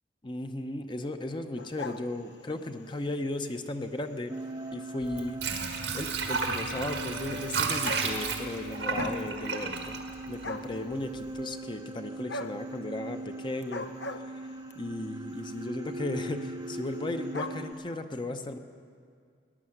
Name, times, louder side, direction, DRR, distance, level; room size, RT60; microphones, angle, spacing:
voice 1, 0.2-4.3 4.7-5.4 5.9-10.0 10.3-13.9 14.1-14.4 14.8-18.6, left 2 dB, 25° left, 7 dB, 0.8 m, -36 dB
sound 1, 1.6-2.7 3.3-3.6 4.4-4.5 4.7-4.8 5.1-5.2 6.3-6.4 7.4-7.5 7.7-8.5 8.8-9.3 9.6-10.2 10.4-10.8 12.3-12.6 13.6-14.8 15.6-15.9 16.2-16.3 16.5-16.6 16.8-17.6, left 2 dB, 80° left, 0.8 m, -38 dB
sound 2, 4.3-17.7, right 2 dB, 20° right, 0.6 m, -41 dB
Water / Sink (filling or washing), 5.0-10.9 11.3-11.4, right 4 dB, 85° right, 1.7 m, -32 dB
17.5 x 10.5 x 7.9 m, 2.2 s
head